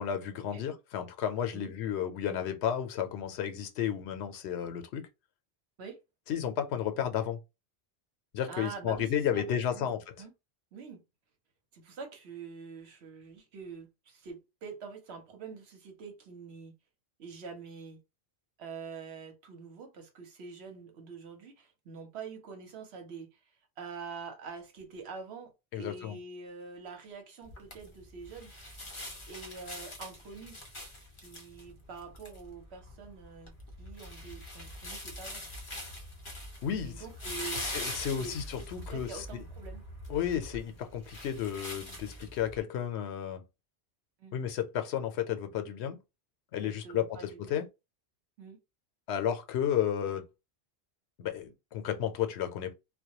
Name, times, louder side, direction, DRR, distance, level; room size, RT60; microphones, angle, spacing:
voice 1, 0.0-5.1 6.3-7.4 8.3-10.0 25.7-26.2 36.6-37.0 37.5-39.4 40.1-43.4 44.3-46.0 46.5-47.7 49.1-50.3 51.2-52.7, left 9 dB, 85° left, 0.8 m, -32 dB
voice 2, 8.5-9.9 10.2-10.3 10.7-11.0 11.7-16.7 17.2-18.0 18.6-23.4 23.8-28.5 29.3-30.6 31.2-35.4 36.8-37.8 38.2-39.8 44.2-44.3 46.6-47.6 48.4-48.6, right 5 dB, 80° right, 1.0 m, -45 dB
sound 1, 27.4-42.6, left 1 dB, 35° left, 0.6 m, -43 dB
2.2 x 2.1 x 2.8 m
omnidirectional pair, 1.1 m